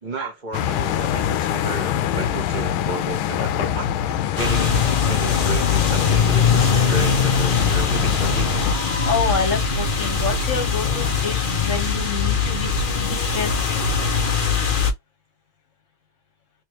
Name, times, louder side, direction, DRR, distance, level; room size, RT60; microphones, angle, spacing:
voice 1, 0.0-3.9 4.3-8.5, right 3 dB, 30° right, 0.9 m, -32 dB
sound 1, 0.5-8.8, left 10 dB, 85° left, 1.4 m, -24 dB
sound 2, 4.4-14.9, left 5 dB, 65° left, 0.5 m, -21 dB
voice 2, 9.1-13.7, left 5 dB, 40° left, 1.4 m, -27 dB
3.6 x 3.1 x 3.0 m
omnidirectional pair, 2.2 m